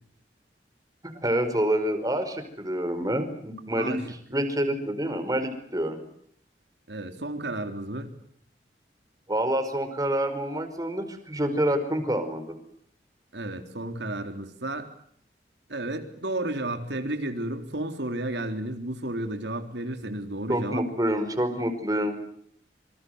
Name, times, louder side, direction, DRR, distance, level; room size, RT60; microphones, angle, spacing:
voice 1, 1.0-6.0 9.3-12.6 20.5-22.1, right 1 dB, 20° right, 8 dB, 5.1 m, -27 dB
voice 2, 3.8-4.1 6.9-8.1 13.3-14.9 15.7-20.9, right 1 dB, 80° right, 6 dB, 3.7 m, -32 dB
27.5 x 26.0 x 8.0 m, 0.67 s
head